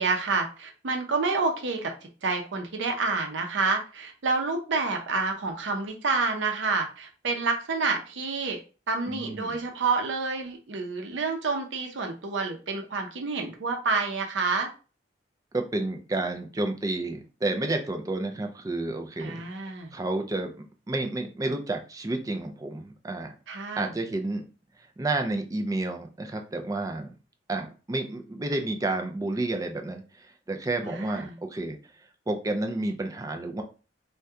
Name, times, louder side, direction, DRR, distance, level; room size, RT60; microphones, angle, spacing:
voice 1, 0.0-1.9 2.2-8.6 8.9-14.7 19.2-20.0 23.5-23.9 30.8-31.4, right 4 dB, 90° right, 3 dB, 0.6 m, -28 dB
voice 2, 9.1-9.6 15.5-20.5 20.9-23.3 23.8-24.5 25.0-27.1 27.5-31.8 32.3-33.6, right 2 dB, 20° right, 4 dB, 0.4 m, -30 dB
2.7 x 2.2 x 3.5 m, 0.34 s
head